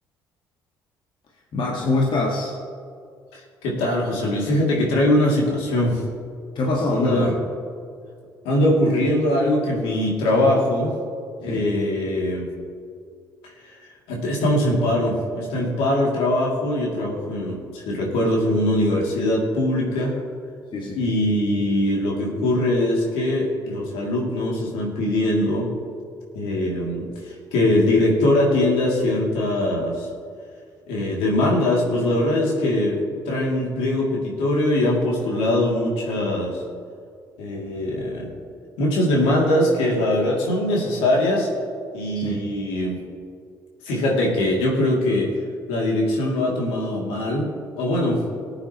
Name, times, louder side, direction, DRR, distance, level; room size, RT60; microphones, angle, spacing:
voice 1, 1.5-2.6 6.6-7.4 11.5-11.7 20.7-21.0 42.2-42.4, left 2 dB, 50° left, -2 dB, 1.9 m, -24 dB
voice 2, 3.3-6.0 6.9-7.3 8.4-10.9 11.4-12.5 13.4-20.2 21.0-25.7 26.3-30.1 30.9-33.0 33.3-36.6 37.4-38.4 38.8-41.5 41.9-43.0 43.8-45.4 45.7-48.2, left 1 dB, 75° left, -2 dB, 2.8 m, -22 dB
20.0 x 8.7 x 3.1 m, 2.3 s
hypercardioid pair, 50°, 10 cm